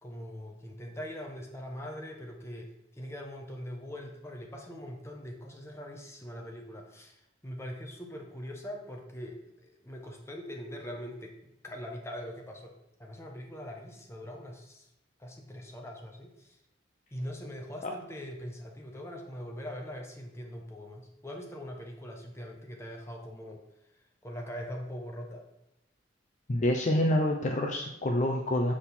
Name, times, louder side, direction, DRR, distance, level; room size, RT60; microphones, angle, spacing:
voice 1, 0.0-12.7 13.0-14.9 15.2-16.6 17.1-23.6 24.2-25.4, equal, 15° left, 1 dB, 1.0 m, -42 dB
voice 2, 26.5-28.7, left 1 dB, 40° left, 2 dB, 0.6 m, -27 dB
7.3 x 4.3 x 4.2 m, 0.85 s
head